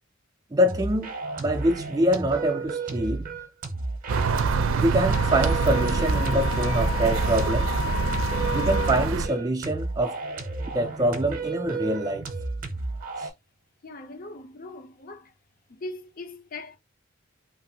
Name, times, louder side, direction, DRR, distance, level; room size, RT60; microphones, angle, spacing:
voice 1, 0.5-3.3 4.8-7.7 8.5-10.2 10.7-12.2 13.2-13.3, right 1 dB, 20° right, 0.4 m, -25 dB
sound 1, 0.6-13.3, right 3 dB, 45° right, 0.7 m, -33 dB
sound 2, 4.1-9.3, right 4 dB, 80° right, 0.4 m, -25 dB
Wind instrument woodwind instrument, 4.9-8.9, left 12 dB, 90° left, 0.4 m, -34 dB
voice 2, 13.8-15.3 15.7-16.8, left 2 dB, 45° left, 0.6 m, -40 dB
3.0 x 2.5 x 2.7 m
head